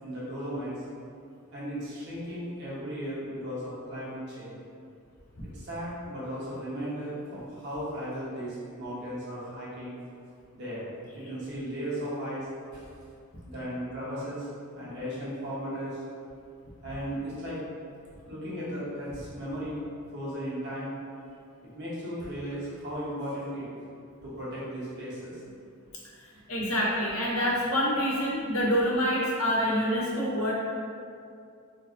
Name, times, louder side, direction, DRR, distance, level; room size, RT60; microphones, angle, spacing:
voice 1, 0.0-0.7 1.5-4.6 5.5-9.9 10.5-10.9 11.1-12.5 12.7-12.8 13.4-14.5 14.7-16.0 16.8-17.6 18.3-19.8 20.1-20.9 21.8-23.9 24.2-25.4, equal, 55° right, -9 dB, 1.0 m, -36 dB
voice 2, 26.5-30.5, equal, 70° left, -5 dB, 0.8 m, -26 dB
3.7 x 2.6 x 2.5 m, 2.4 s
head